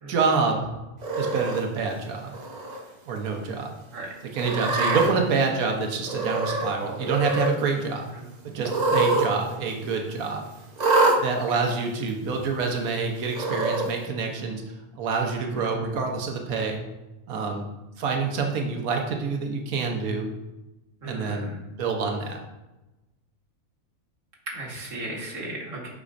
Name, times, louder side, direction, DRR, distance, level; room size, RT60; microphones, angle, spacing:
voice 1, 0.1-0.7 1.2-2.4 3.1-3.7 4.2-8.1 8.4-10.4 11.2-14.6 14.9-16.8 17.3-17.7 18.0-20.3 21.0-21.5 21.8-22.4, right 4 dB, 85° right, 2 dB, 1.3 m, -27 dB
Cat, 1.0-1.6 2.3-2.8 3.2-3.3 4.3-5.1 6.1-6.7 7.0-7.6 8.6-9.3 9.6-9.7 10.8-11.2 12.1-12.2 13.3-13.9, right 3 dB, 40° right, 0.7 m, -24 dB
voice 2, 21.0-21.4 24.5-25.9, right 2 dB, 65° right, -3 dB, 1.9 m, -35 dB
8.3 x 5.1 x 2.5 m, 1.0 s
omnidirectional pair, 1.5 m